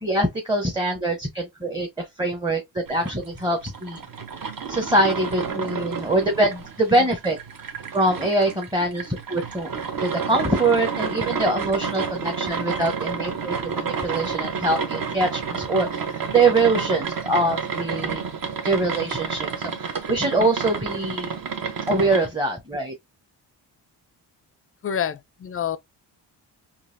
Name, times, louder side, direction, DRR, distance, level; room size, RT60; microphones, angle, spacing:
voice 1, 0.0-4.0 4.7-7.4 7.9-9.7 10.0-18.3 18.6-21.3 21.9-22.9, right 2 dB, 10° right, 0.8 m, -23 dB
sound 1, 2.9-22.3, right 5 dB, 50° right, 0.9 m, -30 dB
voice 2, 24.8-25.8, left 8 dB, 35° left, 0.4 m, -27 dB
3.9 x 2.7 x 2.5 m
cardioid pair, 80°, 44 cm